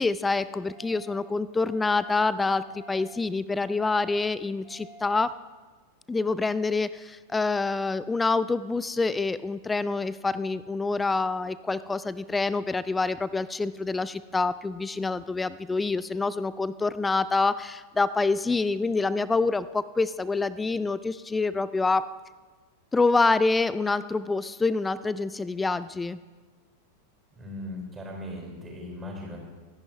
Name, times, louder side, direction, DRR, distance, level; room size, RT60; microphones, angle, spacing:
voice 1, 0.0-5.4 6.1-22.1 22.9-26.2, left 3 dB, 10° left, 17 dB, 0.4 m, -26 dB
sound 1, 0.6-1.1 1.6-2.1 2.6-3.1 3.6-4.1 4.6-5.1, right 1 dB, 35° left, 4.5 m, -50 dB
voice 2, 27.3-29.4, left 1 dB, 15° right, -1 dB, 4.8 m, -38 dB
24.0 x 10.5 x 3.1 m, 1.3 s
figure-of-eight pair, 90°, 0 cm